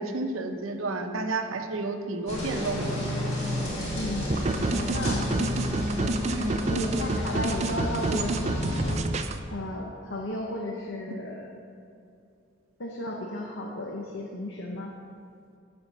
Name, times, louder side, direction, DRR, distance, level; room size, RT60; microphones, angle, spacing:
voice 1, 0.0-3.0 6.3-6.6, right 2 dB, 85° right, 6 dB, 0.8 m, -31 dB
sound 1, 2.3-8.9, left 1 dB, 30° left, 2.4 m, -31 dB
voice 2, 3.9-5.3 6.7-8.8 9.5-11.5 12.8-15.0, left 1 dB, 60° left, -1 dB, 0.9 m, -34 dB
sound 2, 4.3-9.4, right 2 dB, 30° right, 0.4 m, -29 dB
11.5 x 4.5 x 6.6 m, 2.5 s
head